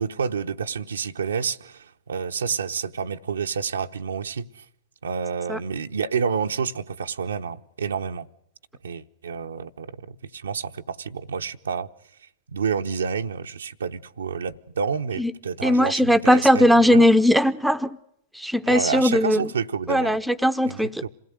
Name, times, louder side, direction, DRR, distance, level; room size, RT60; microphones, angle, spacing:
voice 1, 0.0-4.6 5.0-8.3 8.8-11.9 12.5-17.1 18.7-20.2 20.7-21.1, right 6 dB, 80° right, 0.9 m, -29 dB
voice 2, 15.6-18.0 18.3-19.5 19.9-21.0, equal, ahead, 0.9 m, -19 dB
27.0 x 17.0 x 7.8 m
figure-of-eight pair, 100°, 0 cm